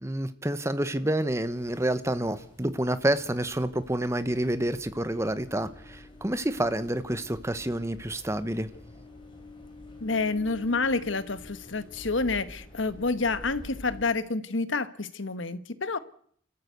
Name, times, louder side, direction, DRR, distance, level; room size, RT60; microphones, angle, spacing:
voice 1, 0.0-8.7, right 1 dB, 15° right, 12 dB, 1.0 m, -28 dB
sound 1, 1.3-14.1, left 1 dB, 25° left, 4.9 m, -48 dB
voice 2, 10.0-16.0, left 3 dB, 75° left, 13 dB, 1.3 m, -28 dB
29.5 x 14.0 x 8.0 m, 0.62 s
head